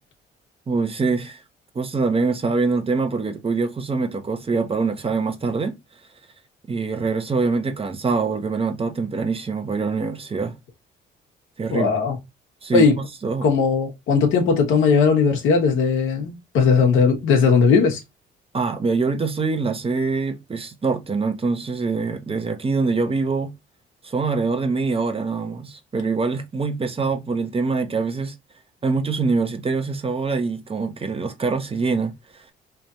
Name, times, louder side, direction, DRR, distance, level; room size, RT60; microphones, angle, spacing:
voice 1, 0.7-1.4 1.7-5.7 6.7-10.6 11.6-11.9 12.6-13.5 18.5-23.5 24.0-28.3 28.8-32.1, right 4 dB, 30° right, 0.8 m, -24 dB
voice 2, 11.7-12.2 12.7-13.0 13.4-18.0, left 5 dB, 85° left, 1.2 m, -18 dB
3.3 x 2.5 x 4.1 m
cardioid pair, 90°, 20 cm